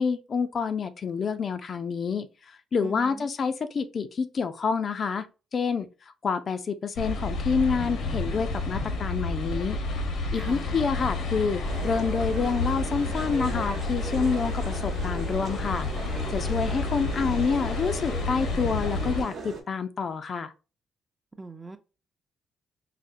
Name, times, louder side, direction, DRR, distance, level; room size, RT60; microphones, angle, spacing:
voice 1, 0.0-5.3 5.5-5.9 6.2-9.8 10.3-15.9 16.3-20.5, left 5 dB, 50° left, 0.4 m, -28 dB
voice 2, 2.8-3.3 10.3-10.6 21.4-21.8, right 3 dB, 20° right, 0.5 m, -42 dB
sound 1, 7.0-19.2, left 3 dB, 80° left, 0.8 m, -30 dB
sound 2, 11.6-19.6, right 3 dB, 65° right, 0.9 m, -38 dB
4.0 x 2.1 x 2.5 m
cardioid pair, 90°, 0 cm